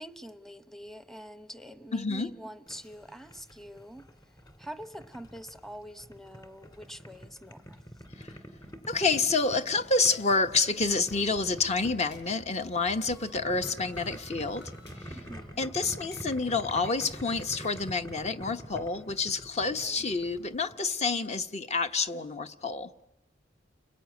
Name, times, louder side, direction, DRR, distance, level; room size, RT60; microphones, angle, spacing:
voice 1, 0.0-4.1 4.6-7.8 15.1-15.7 19.8-20.1, equal, ahead, 0.9 m, -45 dB
voice 2, 1.9-2.3 8.1-8.4 8.9-15.2 15.6-22.9, left 4 dB, 35° left, 1.0 m, -28 dB
Boiling, 2.7-20.7, equal, 20° left, 2.2 m, -46 dB
sound 1, 9.9-18.0, left 1 dB, 65° left, 7.7 m, -51 dB
30.0 x 20.5 x 9.3 m
head